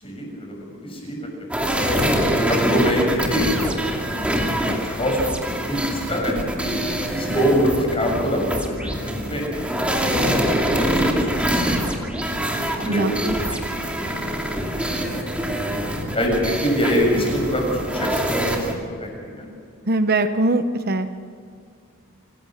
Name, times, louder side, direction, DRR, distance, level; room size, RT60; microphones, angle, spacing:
voice 1, 0.0-1.2 1.6-6.7 7.1-12.1 12.8-13.6 13.9-15.7 16.1-19.5, equal, 25° left, 0 dB, 6.8 m, -26 dB
sound 1, 1.5-18.7, equal, 5° right, 2.6 m, -24 dB
voice 2, 12.9-13.3 19.9-21.1, right 2 dB, 45° right, 9 dB, 0.9 m, -21 dB
27.0 x 18.5 x 6.6 m, 2.2 s
head